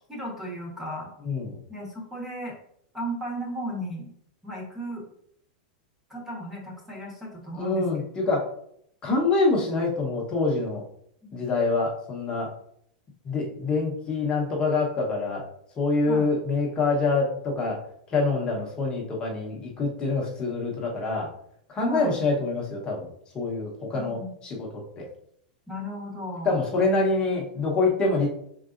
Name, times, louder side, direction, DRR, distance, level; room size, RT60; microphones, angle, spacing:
voice 1, 0.1-1.1 1.7-2.6 2.9-4.1 4.4-5.1 6.1-7.8 11.2-11.4 16.0-16.3 21.8-22.1 23.9-24.3 25.7-26.6, equal, 5° right, -3 dB, 1.2 m, -35 dB
voice 2, 1.2-1.6 7.5-8.5 9.0-10.8 11.3-12.5 13.2-15.4 15.8-17.8 18.1-21.3 21.7-23.1 23.3-24.7 25.0-25.1 26.4-28.3, left 3 dB, 20° left, -2 dB, 1.0 m, -25 dB
5.4 x 3.8 x 2.5 m, 0.68 s
supercardioid pair, 165°, 5 cm